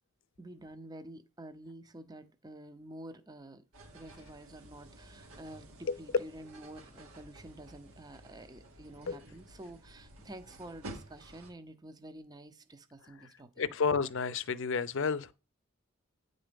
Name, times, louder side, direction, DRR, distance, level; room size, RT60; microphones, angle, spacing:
voice 1, 0.4-3.6 3.9-13.5, right 1 dB, 20° right, 0.7 m, -49 dB
sound 1, 3.7-11.5, right 1 dB, 80° right, 1.9 m, -52 dB
voice 2, 5.8-6.2 9.1-9.2 13.1-13.3 13.6-15.3, left 5 dB, 60° left, 0.6 m, -31 dB
9.1 x 4.0 x 5.2 m
head